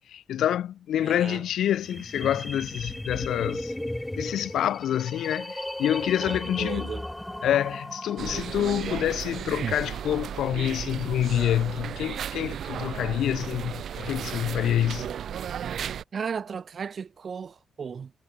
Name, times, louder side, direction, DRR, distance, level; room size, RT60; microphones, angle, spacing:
voice 1, 0.1-3.7 4.2-6.9 7.4-15.1, left 11 dB, 85° left, 0.8 m, -27 dB
voice 2, 1.0-1.4 6.2-7.1 16.1-18.1, right 6 dB, 55° right, 2.7 m, -35 dB
sound 1, 1.6-8.6, left 1 dB, 10° left, 0.7 m, -36 dB
sound 2, 8.2-16.0, right 9 dB, 75° right, 0.8 m, -34 dB
cardioid pair, 75°, 0 cm